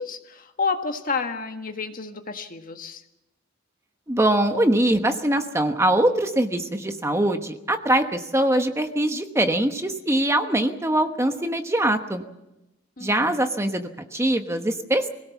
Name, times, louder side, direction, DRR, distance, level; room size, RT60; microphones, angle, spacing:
voice 1, 0.0-3.0 13.0-13.4, left 4 dB, 45° left, 6 dB, 1.6 m, -30 dB
voice 2, 4.1-12.2 13.0-15.1, right 1 dB, 15° right, 6 dB, 1.1 m, -22 dB
24.5 x 17.5 x 7.2 m, 0.93 s
head